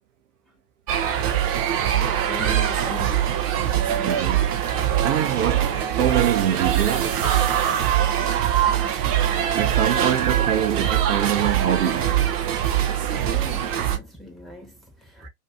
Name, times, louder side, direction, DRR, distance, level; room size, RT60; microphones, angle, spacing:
sound 1, 0.9-14.0, right 10 dB, 25° right, 0.4 m, -22 dB
voice 1, 1.8-3.5 13.0-15.3, left 1 dB, ahead, 1.0 m, -39 dB
voice 2, 3.8-7.2 9.5-12.2 13.0-13.3 15.2-15.3, right 10 dB, 50° right, 0.8 m, -25 dB
2.7 x 2.5 x 3.5 m
figure-of-eight pair, 100°, 47 cm